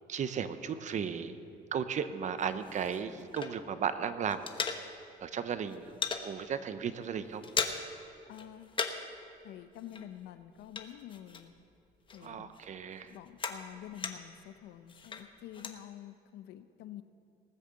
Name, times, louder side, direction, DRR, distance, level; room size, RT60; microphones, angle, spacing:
voice 1, 0.1-1.3 1.7-4.4 5.2-5.9 6.2-7.4 12.2-13.1, right 7 dB, 45° right, 11 dB, 0.8 m, -35 dB
sound 1, 2.4-5.3 5.5-6.3 6.7-6.9 7.1-8.0 8.3-9.2 9.4-11.7 12.1-14.4 14.9-15.8, left 5 dB, 30° left, 1.0 m, -38 dB
voice 2, 8.3-8.7 9.4-11.5 12.1-12.5 13.0-17.0, left 11 dB, 85° left, 12 dB, 0.7 m, -48 dB
19.0 x 6.7 x 7.6 m, 2.7 s
cardioid pair, 110°, 17 cm